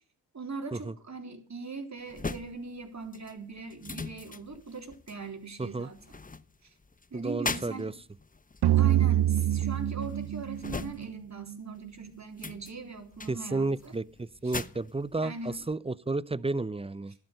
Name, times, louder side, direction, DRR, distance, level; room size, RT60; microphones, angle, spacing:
voice 1, 0.3-6.0 6.6-6.7 7.1-7.9 8.8-13.9 14.4-14.5 15.2-15.6 16.4-16.5, right 4 dB, 40° right, 3.8 m, -40 dB
sound 1, 2.1-11.5 11.8-15.8, left 3 dB, 20° left, 1.0 m, -41 dB
voice 2, 7.1-7.9 13.3-17.1, right 3 dB, 15° right, 0.6 m, -32 dB
sound 2, 8.6-11.9, right 12 dB, 65° right, 0.7 m, -26 dB
12.0 x 11.5 x 6.6 m
supercardioid pair, 55°, 42 cm